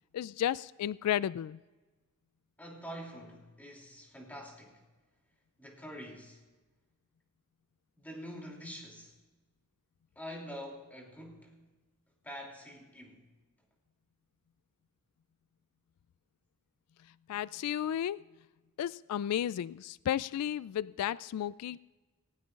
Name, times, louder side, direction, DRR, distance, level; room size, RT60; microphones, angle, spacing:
voice 1, 0.1-1.6 17.3-18.2 18.8-21.8, left 10 dB, 90° left, 0.3 m, -33 dB
voice 2, 2.6-4.8 5.6-6.4 7.9-9.2 10.1-11.6 12.2-13.3, equal, 10° left, 2.8 m, -46 dB
18.0 x 18.0 x 2.5 m
head